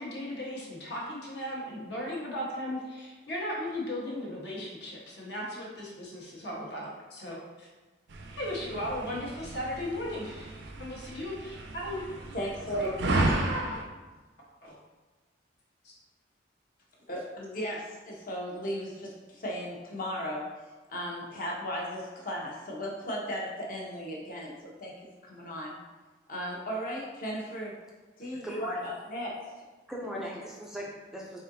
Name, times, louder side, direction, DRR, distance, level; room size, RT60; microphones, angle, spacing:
voice 1, 0.0-7.7 8.4-12.0 12.8-13.7 14.6-14.7 15.8-15.9, left 1 dB, 65° left, -4 dB, 1.2 m, -36 dB
sound 1, 8.1-13.9, right 2 dB, 75° right, 0.5 m, -33 dB
voice 2, 12.3-13.0 17.1-20.5 20.9-24.9 25.2-25.7 26.3-27.8 28.2-29.5 30.1-30.3, equal, 45° left, -3 dB, 0.9 m, -36 dB
voice 3, 28.4-28.8 29.9-31.4, equal, ahead, -3 dB, 0.4 m, -39 dB
4.1 x 3.7 x 2.6 m, 1.3 s
head